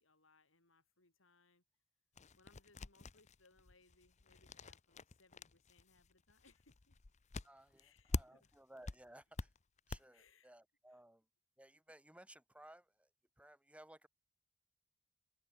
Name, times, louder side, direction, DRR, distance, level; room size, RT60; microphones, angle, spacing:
voice 1, 0.0-1.6 2.3-7.0 7.8-8.5 10.1-10.5 10.9-11.0, left 3 dB, 75° left, 6.8 m, -71 dB
sound 1, 2.2-8.6 8.9-10.0, left 3 dB, 35° left, 0.7 m, -45 dB
voice 2, 7.4-9.5 9.9-11.3 11.6-13.1 13.4-14.1, right 1 dB, 5° right, 5.3 m, -60 dB
head